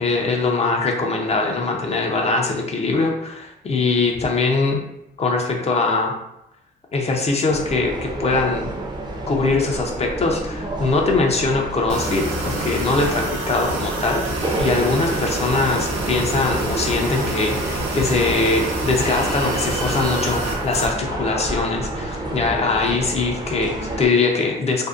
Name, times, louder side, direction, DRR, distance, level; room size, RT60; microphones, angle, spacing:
voice 1, 0.0-4.8 5.2-6.1 6.9-8.7 9.3-24.9, left 3 dB, 35° left, 1 dB, 0.5 m, -22 dB
sound 1, 7.5-24.1, right 1 dB, 20° right, 0.5 m, -29 dB
sound 2, 11.9-20.9, right 2 dB, 85° right, 0.6 m, -27 dB
2.6 x 2.1 x 2.3 m, 0.84 s
cardioid pair, 90°, 20 cm